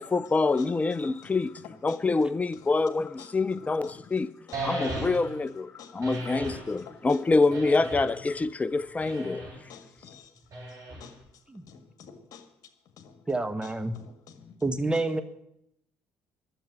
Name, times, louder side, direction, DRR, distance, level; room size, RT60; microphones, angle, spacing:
voice 1, 0.0-4.3 4.6-9.5, left 3 dB, 20° left, 0.5 m, -26 dB
voice 2, 0.5-1.4 1.9-2.0 2.5-2.7 3.2-4.1 4.5-5.1 5.7-7.2 9.1-9.3 9.7-10.3 10.7-11.2 11.7-12.5 13.0-13.2 13.6-14.6 14.9-15.2, left 7 dB, 60° left, 1.8 m, -50 dB
sound 1, 4.5-5.4 6.0-6.7 7.5-8.2 9.0-9.6 10.5-11.2, right 1 dB, 50° right, 6.2 m, -36 dB
voice 3, 13.3-13.9 14.6-15.2, right 2 dB, 15° right, 1.2 m, -28 dB
12.0 x 7.7 x 9.8 m
hypercardioid pair, 50°, 7 cm